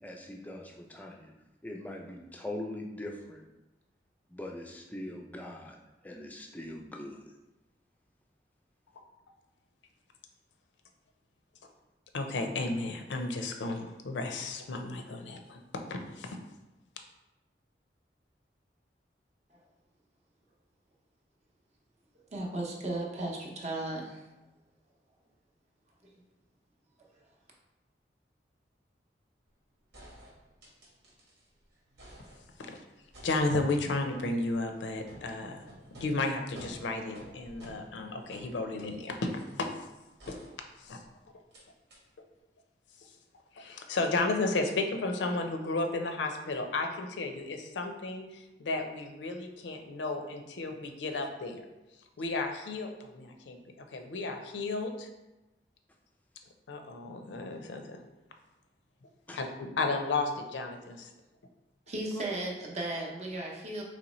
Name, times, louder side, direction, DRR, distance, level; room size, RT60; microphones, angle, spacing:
voice 1, 0.0-1.3 1.6-3.4 4.3-5.8 6.0-7.3 59.3-59.4, left 1 dB, 10° left, 1 dB, 0.3 m, -42 dB
voice 2, 12.1-16.4 32.6-32.8 33.2-35.6 36.0-39.3 39.6-39.7 40.3-40.4 40.8-41.0 43.6-51.6 52.2-55.1 56.7-58.0 59.3-61.1, left 3 dB, 90° left, 5 dB, 0.5 m, -33 dB
voice 3, 22.3-24.2 61.9-63.8, right 2 dB, 40° right, -1 dB, 0.6 m, -35 dB
sound 1, 29.5-29.6 29.9-31.5 31.8-32.7 33.1-39.7 40.2-41.0 41.5-41.6 41.9-42.0, right 1 dB, 80° right, 1.3 m, -52 dB
4.0 x 3.1 x 3.0 m, 1.0 s
head